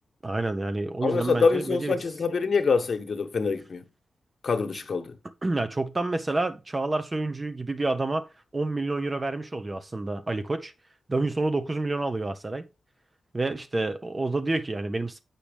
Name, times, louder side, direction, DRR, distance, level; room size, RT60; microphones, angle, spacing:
voice 1, 0.2-1.9 5.4-8.3 8.5-10.7 11.1-12.7 13.3-15.2, right 2 dB, 30° right, 1.1 m, -28 dB
voice 2, 1.0-3.9 4.4-5.2, left 5 dB, 60° left, 1.2 m, -25 dB
7.5 x 5.9 x 3.5 m
cardioid pair, 55°, 0 cm